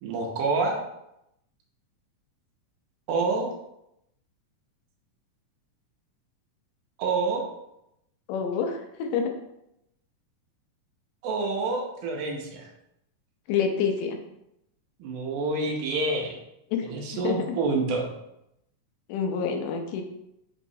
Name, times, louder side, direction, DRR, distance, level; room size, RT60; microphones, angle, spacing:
voice 1, 0.0-0.8 3.1-3.5 7.0-7.5 11.2-12.7 15.0-16.4 16.8-18.1, right 3 dB, 80° right, 1 dB, 2.1 m, -27 dB
voice 2, 8.3-9.3 13.5-14.2 16.7-16.9 17.2-17.4 19.1-20.0, left 6 dB, 85° left, 4 dB, 2.2 m, -27 dB
5.4 x 3.0 x 2.6 m, 0.83 s
omnidirectional pair, 3.7 m